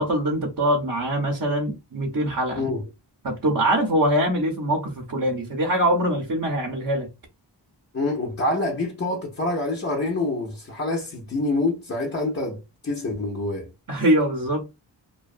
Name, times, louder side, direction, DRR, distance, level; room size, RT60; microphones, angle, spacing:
voice 1, 0.0-2.6 3.2-7.1 13.9-14.6, right 1 dB, 45° right, 0.7 m, -23 dB
voice 2, 7.9-13.7, left 2 dB, 30° left, 0.5 m, -26 dB
2.5 x 2.2 x 2.4 m
wide cardioid pair, 70°, 45 cm